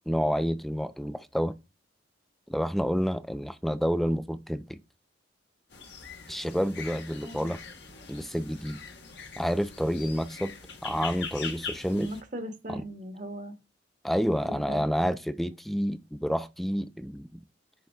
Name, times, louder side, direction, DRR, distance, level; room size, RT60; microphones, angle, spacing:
voice 1, 0.1-1.5 2.5-4.8 6.3-7.6 8.1-8.8 9.4-10.6 10.8-12.1 12.7-12.8 14.0-17.4, equal, ahead, 0.5 m, -29 dB
sound 1, 5.7-12.2, left 5 dB, 60° left, 1.5 m, -42 dB
voice 2, 7.2-7.5 11.9-13.5 14.5-14.9, right 1 dB, 45° right, 1.5 m, -38 dB
10.5 x 4.0 x 3.6 m
head